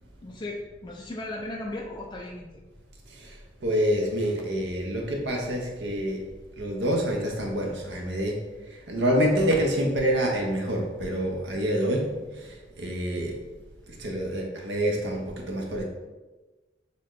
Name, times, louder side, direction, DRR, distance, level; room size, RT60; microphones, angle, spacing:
voice 1, 0.2-2.6, left 1 dB, 25° left, -1 dB, 0.3 m, -36 dB
voice 2, 3.1-6.3 6.6-13.4 13.9-15.8, equal, 70° right, 0 dB, 0.8 m, -27 dB
4.2 x 3.6 x 3.2 m, 1.2 s
head